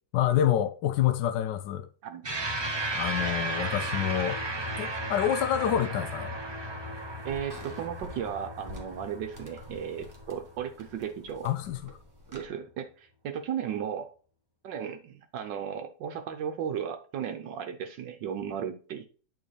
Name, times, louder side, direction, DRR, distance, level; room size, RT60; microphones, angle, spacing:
voice 1, 0.1-1.9 2.9-4.4 4.8-6.3 11.4-11.9, left 11 dB, 75° left, 1.1 m, -27 dB
sound 1, 2.2-10.9, right 1 dB, 45° right, 0.3 m, -35 dB
sound 2, 5.8-12.5, left 1 dB, 15° right, 1.0 m, -50 dB
voice 2, 7.2-11.5 12.3-14.1 14.6-19.0, right 8 dB, 70° right, 1.3 m, -35 dB
8.6 x 4.3 x 3.2 m
omnidirectional pair, 2.1 m